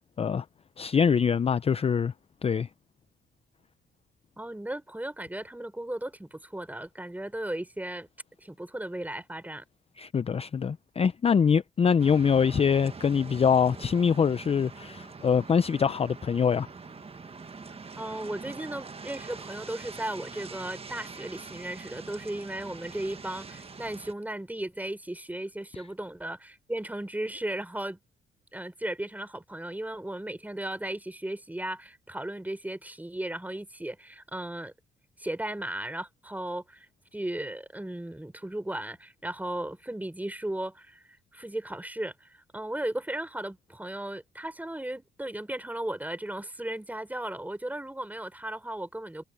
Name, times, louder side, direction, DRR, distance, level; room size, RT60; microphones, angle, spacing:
voice 1, 0.8-2.1 2.4-2.7 10.0-16.7, left 6 dB, 30° left, 0.5 m, -24 dB
voice 2, 4.4-8.1 8.4-9.6 18.0-28.0 28.5-34.7 35.2-41.0 41.3-49.2, right 1 dB, 10° right, 4.8 m, -36 dB
sound 1, 12.0-24.1, right 4 dB, 30° right, 1.5 m, -44 dB
cardioid pair, 90°, 20 cm